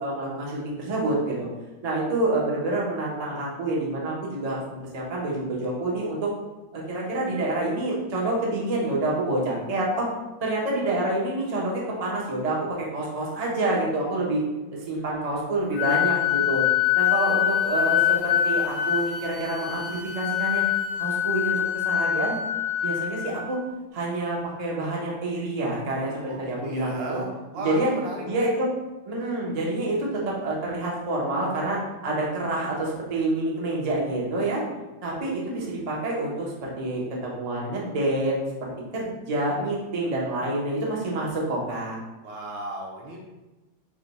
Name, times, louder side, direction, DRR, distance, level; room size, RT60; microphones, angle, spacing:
voice 1, 0.0-1.5 1.8-6.3 6.7-10.1 10.4-14.4 14.7-16.6 16.9-20.6 21.0-22.4 22.8-23.6 23.9-27.2 27.6-27.9 28.2-28.7 29.0-34.6 35.0-42.0, right 2 dB, 50° right, -4 dB, 0.4 m, -27 dB
Wind instrument woodwind instrument, 15.8-23.5, left 11 dB, 75° left, 1.7 m, -24 dB
voice 2, 26.3-28.5 42.2-43.2, right 1 dB, 75° right, -2 dB, 1.6 m, -35 dB
5.0 x 2.2 x 4.0 m, 1.1 s
omnidirectional pair, 2.1 m